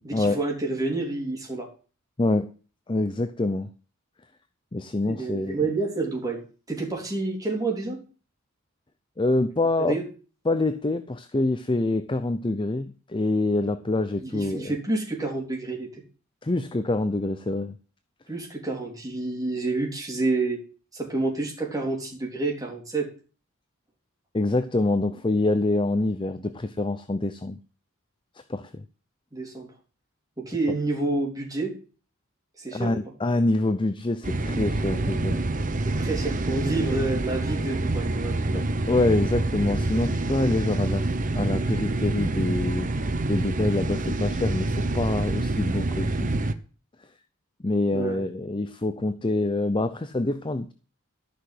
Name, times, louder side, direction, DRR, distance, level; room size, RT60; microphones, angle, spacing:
voice 1, 0.0-1.7 5.1-8.0 9.8-10.1 14.2-16.0 18.3-20.6 20.9-23.1 29.3-29.7 30.4-31.7 32.6-33.0 35.8-38.5 47.9-48.2, right 3 dB, 15° right, 3.5 m, -29 dB
voice 2, 2.2-2.5 2.9-3.7 4.7-5.6 9.2-10.0 10.5-14.7 16.4-17.8 24.3-27.6 28.5-28.8 32.7-35.4 38.5-41.1 41.3-42.9 43.3-46.3 47.6-50.7, left 2 dB, 20° left, 0.5 m, -26 dB
sound 1, 34.2-46.5, right 2 dB, 35° right, 0.9 m, -27 dB
13.5 x 6.0 x 7.8 m
head